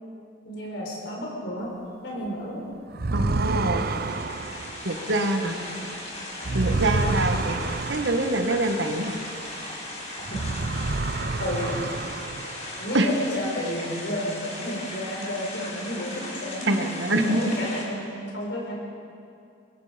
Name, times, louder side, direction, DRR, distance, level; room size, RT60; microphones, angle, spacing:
voice 1, 0.4-1.7 2.0-2.6 5.3-5.7 6.6-6.8 10.3-10.4 11.4-11.8 12.8-16.7 17.1-18.8, equal, 80° left, -2 dB, 4.4 m, -32 dB
sound 1, 2.9-9.9 10.2-12.9, right 3 dB, 60° right, 0.7 m, -30 dB
voice 2, 3.1-3.8 4.8-5.5 6.5-7.6 7.9-9.2 12.9-13.1 16.7-17.4, right 1 dB, 90° right, 5 dB, 1.7 m, -25 dB
sound 2, 3.7-17.8, left 1 dB, 40° left, 4.4 m, -37 dB
23.5 x 22.5 x 5.3 m, 2.4 s
head